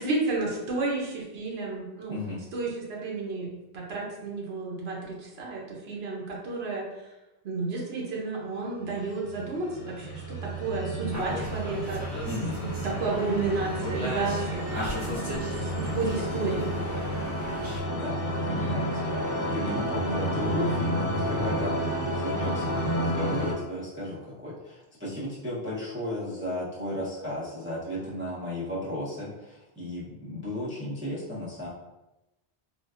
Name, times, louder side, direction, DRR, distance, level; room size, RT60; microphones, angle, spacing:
voice 1, 0.0-2.2 2.5-6.8 7.4-12.0 12.6-14.7 15.5-16.7, right 3 dB, 80° right, -2 dB, 1.0 m, -31 dB
voice 2, 2.1-2.4 12.2-12.6 17.9-31.7, left 1 dB, 15° right, -8 dB, 0.6 m, -34 dB
sound 1, 9.2-23.5, equal, 65° left, 0.9 m, -31 dB
sound 2, 11.1-17.8, left 1 dB, 45° right, 1.0 m, -37 dB
3.9 x 2.2 x 2.3 m, 0.98 s
omnidirectional pair, 1.0 m